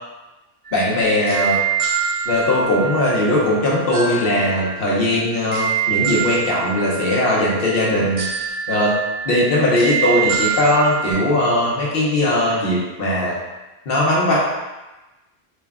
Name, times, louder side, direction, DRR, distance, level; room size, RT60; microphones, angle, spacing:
voice 1, 0.7-1.6 2.3-8.3 8.7-8.9 9.2-13.4 13.9-14.4, left 1 dB, 65° left, -5 dB, 1.0 m, -19 dB
sound 1, 0.7-11.1, right 7 dB, 40° right, 0.6 m, -26 dB
3.1 x 2.2 x 3.5 m, 1.1 s
omnidirectional pair, 1.0 m